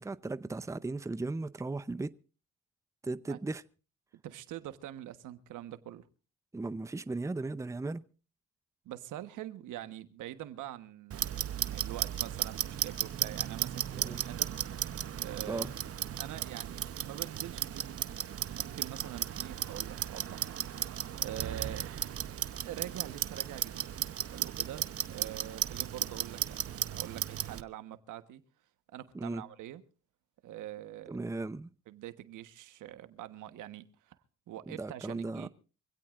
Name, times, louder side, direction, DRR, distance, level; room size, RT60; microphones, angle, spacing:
voice 1, 0.0-2.1 3.0-3.6 6.5-8.0 13.9-14.2 15.5-15.7 29.1-29.4 31.1-31.7 34.7-35.5, right 3 dB, 10° right, 0.6 m, -36 dB
voice 2, 4.2-6.1 8.8-14.6 15.2-15.7 16.2-18.1 18.5-20.5 21.2-21.9 22.6-23.9 24.3-28.4 28.9-29.8 30.4-31.2 31.9-34.2 34.5-35.5, right 12 dB, 85° right, 1.3 m, -44 dB
Clock, 11.1-27.6, right 10 dB, 50° right, 0.9 m, -35 dB
25.0 x 16.5 x 2.5 m
cardioid pair, 90°, 30 cm